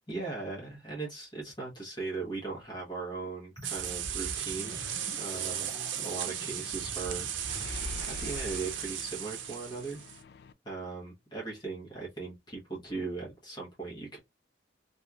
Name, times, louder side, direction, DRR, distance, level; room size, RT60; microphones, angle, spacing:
voice 1, 0.1-4.8 5.2-7.3 8.0-10.0 10.6-14.2, right 3 dB, 25° left, 1.2 m, -38 dB
sound 1, 3.6-8.5, right 1 dB, 40° right, 1.4 m, -45 dB
sound 2, 3.6-10.2, right 10 dB, 90° right, 0.6 m, -36 dB
Mechanisms, 4.6-10.5, left 5 dB, 55° left, 0.3 m, -47 dB
3.1 x 2.7 x 2.3 m
head